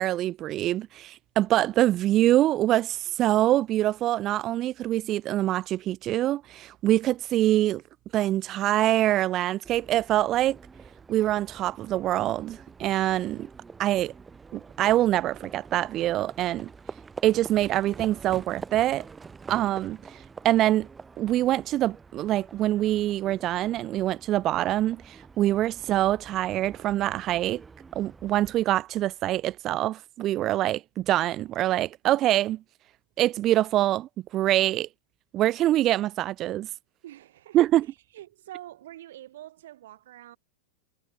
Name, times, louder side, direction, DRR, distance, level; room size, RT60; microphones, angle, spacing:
voice 1, 0.0-7.8 8.1-10.6 11.1-13.5 13.8-14.1 14.5-16.7 17.2-19.1 19.5-20.9 21.2-27.6 27.9-32.6 33.2-34.9 35.3-36.7 37.5-37.9, right 14 dB, 35° right, 0.4 m, -25 dB
Livestock farm animals working animals, 9.6-28.6, right 5 dB, 15° right, 4.0 m, -46 dB
voice 2, 37.0-37.6 38.1-40.4, right 13 dB, 55° right, 4.7 m, -45 dB
figure-of-eight pair, 90°, 0 cm